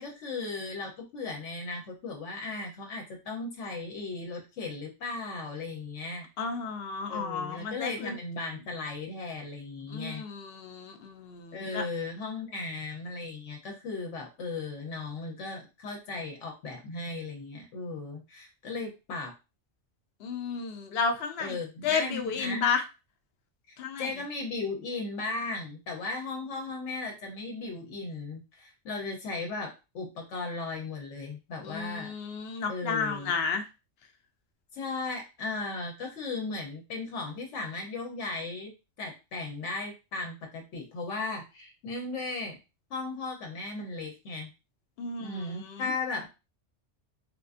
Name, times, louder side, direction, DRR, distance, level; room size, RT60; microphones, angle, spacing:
voice 1, 0.0-6.3 7.1-10.2 11.5-19.3 21.4-22.6 23.7-32.1 32.7-33.4 34.7-38.7 39.0-42.6 42.9-44.5 45.2-46.3, left 3 dB, 80° left, 1 dB, 1.0 m, -36 dB
voice 2, 6.4-8.2 9.9-11.8 20.2-21.6 21.8-22.8 23.8-24.1 31.6-33.6 45.0-45.8, left 5 dB, 65° left, 6 dB, 0.7 m, -32 dB
3.5 x 2.4 x 2.4 m, 0.28 s
omnidirectional pair, 1.2 m